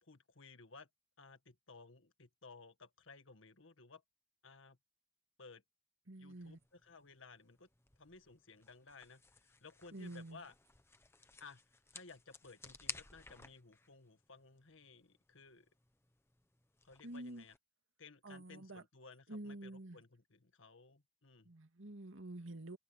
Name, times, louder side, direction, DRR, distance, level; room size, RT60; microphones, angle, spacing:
voice 1, 0.0-0.9 1.2-4.0 4.4-4.8 5.4-5.6 6.2-7.7 8.0-10.5 11.4-11.6 11.9-15.7 16.8-17.6 18.0-21.5, left 4 dB, 75° left, 1.7 m, -58 dB
voice 2, 6.1-6.6 9.9-10.4 17.0-17.4 18.2-18.8 19.3-20.0 21.4-22.8, right 1 dB, 75° right, 2.4 m, -48 dB
sound 1, 6.3-17.6, left 3 dB, 10° left, 1.2 m, -55 dB
head